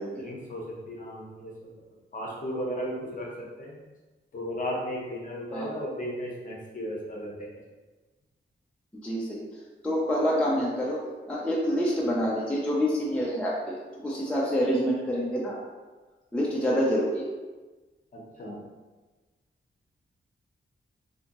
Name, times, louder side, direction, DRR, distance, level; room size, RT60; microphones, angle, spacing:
voice 1, 0.2-1.7 2.1-3.3 3.6-3.8 4.3-7.5 18.1-18.6, equal, 40° left, -3 dB, 0.7 m, -35 dB
voice 2, 9.0-9.4 9.8-11.0 11.3-15.6 16.3-17.3, equal, 5° left, -5 dB, 0.4 m, -27 dB
3.4 x 2.7 x 2.9 m, 1.3 s
wide cardioid pair, 180°, 20 cm